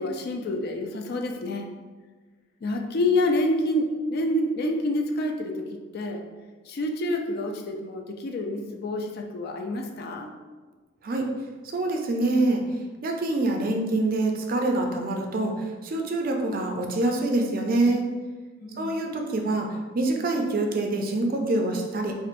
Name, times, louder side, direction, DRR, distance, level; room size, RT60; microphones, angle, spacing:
voice 1, 0.0-1.7 2.6-6.2 6.7-10.3 18.6-19.0, left 1 dB, 50° left, 3 dB, 0.3 m, -28 dB
voice 2, 11.6-12.6 13.0-18.1 18.8-22.1, right 2 dB, 45° right, 3 dB, 0.4 m, -25 dB
4.4 x 2.5 x 2.5 m, 1.4 s
head